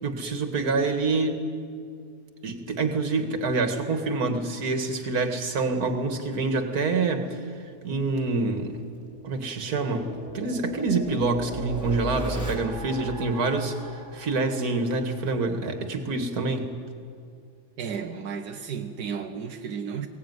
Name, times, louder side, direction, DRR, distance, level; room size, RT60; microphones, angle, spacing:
voice 1, 0.0-1.5 2.4-7.4 7.8-8.8 9.2-13.7 14.1-16.7, right 3 dB, 65° right, 6 dB, 2.2 m, -26 dB
sound 1, 8.7-15.4, right 1 dB, 10° right, 3.7 m, -37 dB
voice 2, 17.8-20.1, right 6 dB, 85° right, 4 dB, 1.5 m, -33 dB
21.5 x 17.5 x 9.5 m, 2.3 s
omnidirectional pair, 1.7 m